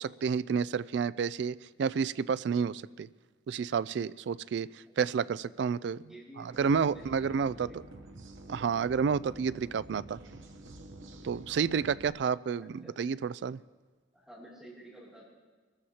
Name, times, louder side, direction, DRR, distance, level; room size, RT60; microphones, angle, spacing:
voice 1, 0.0-3.1 3.5-6.0 6.4-7.7 8.5-10.2 11.2-13.6, right 6 dB, 65° right, 17 dB, 0.3 m, -30 dB
voice 2, 5.1-5.5 6.0-7.9 12.6-13.2 14.1-15.3, right 1 dB, 5° right, -8 dB, 2.8 m, -52 dB
sound 1, 6.5-12.1, right 2 dB, 80° right, 0.9 m, -49 dB
22.0 x 13.5 x 2.9 m, 1.4 s
head